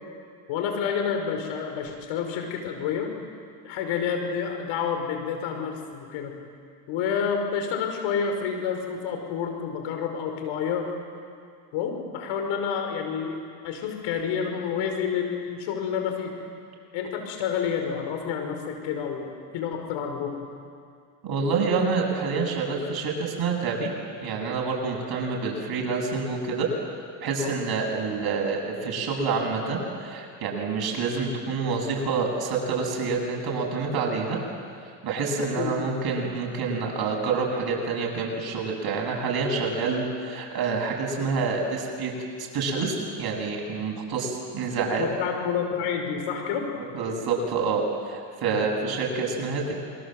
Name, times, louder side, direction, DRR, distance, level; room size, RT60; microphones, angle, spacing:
voice 1, 0.5-3.1 3.6-6.4 6.9-11.0 11.7-16.4 16.9-20.4 27.4-27.6 35.4-35.8 45.0-46.7 48.5-48.6, left 7 dB, 75° left, 4 dB, 5.5 m, -29 dB
voice 2, 21.2-23.9 24.2-26.7 27.2-34.4 35.0-42.1 42.4-45.1 46.8-49.7, right 4 dB, 50° right, -1 dB, 7.8 m, -27 dB
27.5 x 23.5 x 8.0 m, 2.2 s
supercardioid pair, 90°, 47 cm